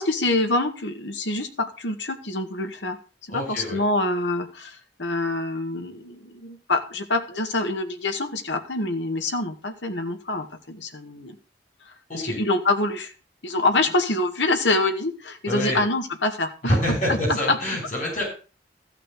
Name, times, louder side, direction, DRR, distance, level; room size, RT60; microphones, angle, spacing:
voice 1, 0.0-3.0 3.3-11.4 12.1-13.1 13.4-16.8 17.1-17.6, left 2 dB, 85° left, 6 dB, 1.9 m, -26 dB
voice 2, 3.3-3.8 12.1-12.4 15.5-15.8 16.6-18.2, equal, 40° left, -1 dB, 5.9 m, -26 dB
14.5 x 5.9 x 6.7 m, 0.36 s
head